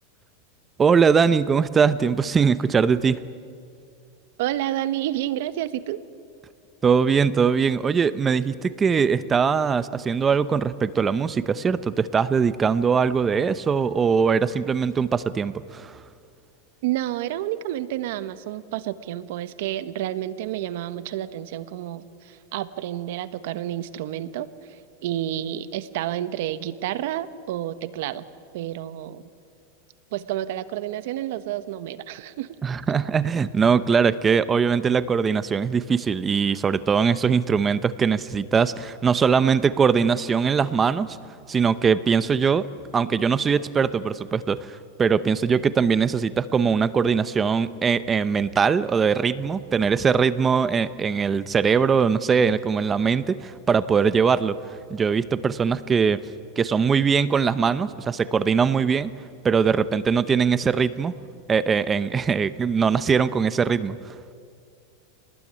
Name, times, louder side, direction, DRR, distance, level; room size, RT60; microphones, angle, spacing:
voice 1, 0.8-3.2 6.8-16.0 32.6-41.2 41.5-42.7 42.9-56.2 56.6-59.1 59.4-61.1 61.5-64.0, right 6 dB, 15° right, 15 dB, 0.7 m, -21 dB
voice 2, 4.4-6.0 16.8-28.2 28.5-29.3 30.1-32.6, right 13 dB, 65° right, 13 dB, 1.3 m, -30 dB
26.5 x 19.5 x 9.9 m, 2.3 s
supercardioid pair, 150°, 0 cm